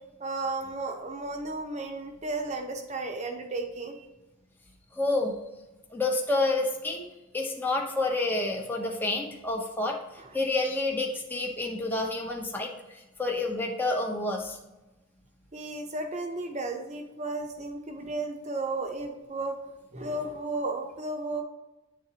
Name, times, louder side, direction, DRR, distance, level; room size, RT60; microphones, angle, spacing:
voice 1, 0.2-4.1 15.5-19.6 19.9-21.4, right 2 dB, 30° right, 4 dB, 0.8 m, -34 dB
voice 2, 4.9-5.4 5.9-7.0 7.3-14.6, left 2 dB, 10° left, 0 dB, 0.7 m, -29 dB
9.3 x 3.9 x 2.8 m, 1.0 s
head